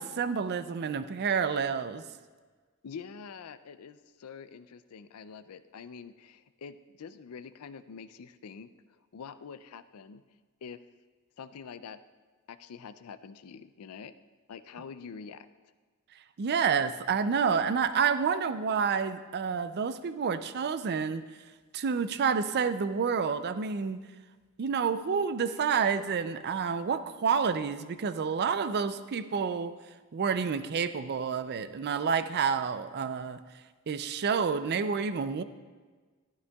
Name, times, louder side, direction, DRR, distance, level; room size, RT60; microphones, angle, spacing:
voice 1, 0.0-2.0 16.4-21.2 21.7-24.0 24.6-29.7 30.1-33.4 33.9-35.4, right 6 dB, 50° right, 12 dB, 0.4 m, -29 dB
voice 2, 2.8-8.7 9.1-10.2 10.6-10.8 11.4-12.0 12.5-14.1 14.5-15.5, left 6 dB, 85° left, 13 dB, 0.4 m, -45 dB
12.0 x 11.0 x 2.3 m, 1.4 s
head